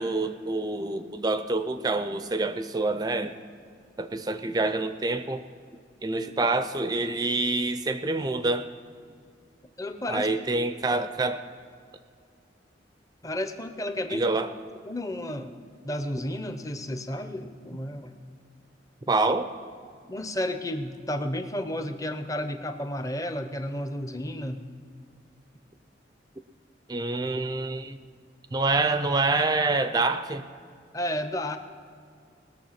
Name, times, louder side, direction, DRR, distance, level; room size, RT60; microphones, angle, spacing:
voice 1, 0.0-3.4 4.0-5.4 6.0-8.7 10.1-11.4 14.1-14.5 19.1-19.5 26.9-28.0 28.5-30.5, right 3 dB, 20° right, 10 dB, 0.4 m, -26 dB
voice 2, 9.8-10.3 10.9-11.0 13.2-14.3 14.8-15.5 15.8-18.1 20.1-24.6 30.9-31.6, left 1 dB, 20° left, 8 dB, 0.7 m, -32 dB
19.5 x 6.9 x 5.8 m, 2.3 s
head